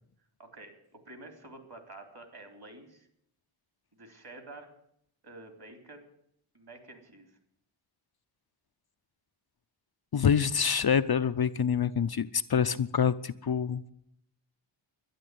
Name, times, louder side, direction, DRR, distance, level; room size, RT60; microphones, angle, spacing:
voice 1, 0.4-3.1 3.9-4.7 5.2-6.1 6.5-7.3, right 2 dB, 50° right, 5 dB, 3.5 m, -49 dB
voice 2, 10.1-13.8, left 7 dB, 50° left, 11 dB, 0.6 m, -26 dB
12.0 x 10.5 x 9.2 m, 0.71 s
wide cardioid pair, 85°, 49 cm